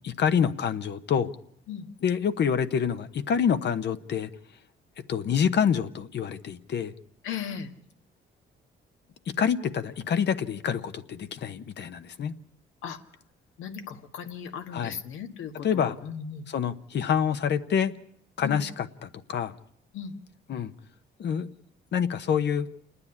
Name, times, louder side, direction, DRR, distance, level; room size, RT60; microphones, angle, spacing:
voice 1, 0.0-1.3 2.0-4.3 5.1-6.9 9.4-12.3 14.7-15.0 15.6-15.9 16.5-17.9 18.4-19.5 20.5-20.7 21.2-21.5 21.9-22.7, left 7 dB, 60° left, 10 dB, 1.1 m, -27 dB
voice 2, 7.2-7.7 12.8-13.0 13.6-16.4 18.4-18.6 19.9-20.2, left 7 dB, 85° left, 7 dB, 1.7 m, -37 dB
28.5 x 9.8 x 9.8 m, 0.74 s
cardioid pair, 90°, 20 cm